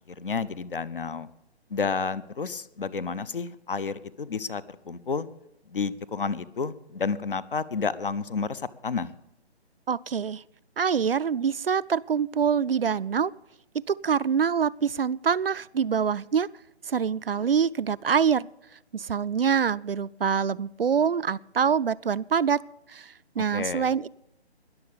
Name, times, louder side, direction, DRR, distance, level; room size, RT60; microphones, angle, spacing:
voice 1, 0.2-1.3 1.7-5.3 5.7-9.1 23.5-23.9, left 5 dB, 55° left, 19 dB, 0.8 m, -30 dB
voice 2, 9.9-10.4 10.8-13.3 13.9-16.5 16.9-18.5 18.9-22.6 22.9-24.1, right 7 dB, 60° right, 17 dB, 0.4 m, -25 dB
21.0 x 7.0 x 7.0 m, 0.85 s
figure-of-eight pair, 145°, 33 cm